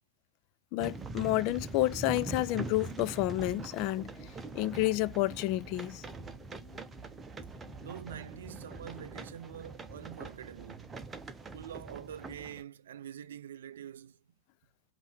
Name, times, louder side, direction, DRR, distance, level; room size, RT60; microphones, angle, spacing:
voice 1, 0.7-4.1 4.5-6.0, left 16 dB, 45° left, 0.4 m, -30 dB
sound 1, 0.8-12.6, right 3 dB, 15° right, 0.9 m, -43 dB
sound 2, 1.3-8.9, left 3 dB, 30° left, 1.4 m, -57 dB
voice 2, 7.8-11.0 11.5-14.2, right 9 dB, 60° right, 0.5 m, -45 dB
5.4 x 2.7 x 3.2 m
figure-of-eight pair, 90°, 0 cm